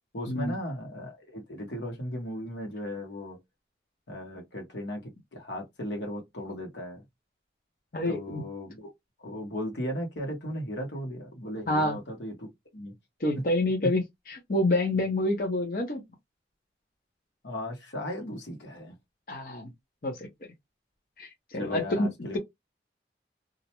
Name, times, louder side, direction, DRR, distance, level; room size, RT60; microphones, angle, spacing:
voice 1, 0.1-3.4 4.1-7.0 8.1-8.9 9.2-12.9 13.8-13.9 17.4-18.9 21.6-22.4, equal, 90° left, 1.0 m, -36 dB
voice 2, 7.9-8.4 11.7-12.0 13.2-16.0 19.3-19.7 20.0-20.3 21.2-22.4, left 1 dB, 50° left, 0.7 m, -28 dB
2.4 x 2.1 x 2.9 m
head